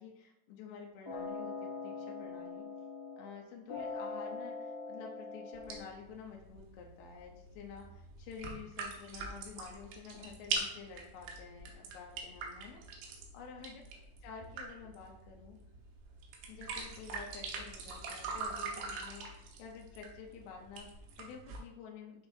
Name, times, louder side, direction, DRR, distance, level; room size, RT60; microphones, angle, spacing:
voice 1, 0.0-2.7 3.2-12.8 13.3-13.8 14.2-15.6 16.5-22.3, left 6 dB, 80° left, 0 dB, 2.7 m, -50 dB
sound 1, 1.0-3.4 3.7-5.7, left 4 dB, 25° left, 0.4 m, -42 dB
sound 2, 5.5-21.6, right 4 dB, 75° right, 2.9 m, -44 dB
9.5 x 3.8 x 2.6 m, 0.86 s
omnidirectional pair, 5.1 m